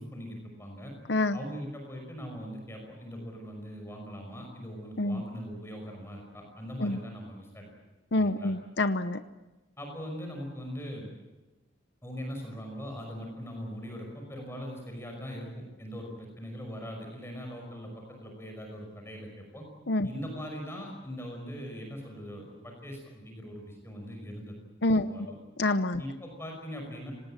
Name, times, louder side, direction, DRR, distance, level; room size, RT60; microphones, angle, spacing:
voice 1, 0.0-0.9 1.3-7.7 8.1-8.5 9.8-11.1 12.0-19.7 20.0-24.6 24.9-25.3 26.0-27.1, equal, 15° left, 2 dB, 5.6 m, -41 dB
voice 2, 8.1-9.2 19.9-20.1 24.8-25.1 25.6-26.0, left 2 dB, 65° left, 10 dB, 0.8 m, -26 dB
27.0 x 19.0 x 8.9 m, 1.1 s
head